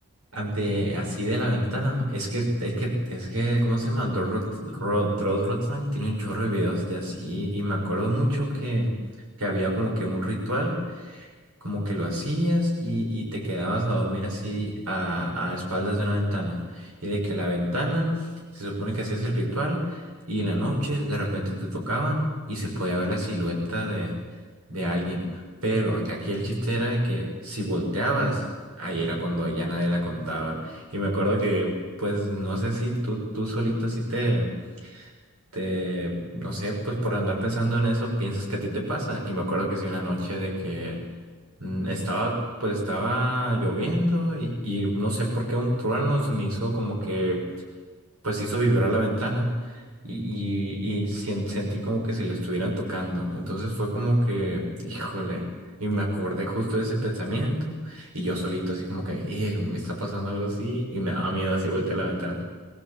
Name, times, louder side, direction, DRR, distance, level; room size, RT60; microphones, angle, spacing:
voice 1, 0.3-8.9 9.4-11.3 11.6-18.3 18.5-24.1 24.7-28.4 28.8-34.6 34.8-35.1 35.5-41.0 41.6-47.4 48.2-55.4 55.8-62.4, equal, 80° right, 0 dB, 6.2 m, -27 dB
22.5 x 18.5 x 8.6 m, 1.5 s
head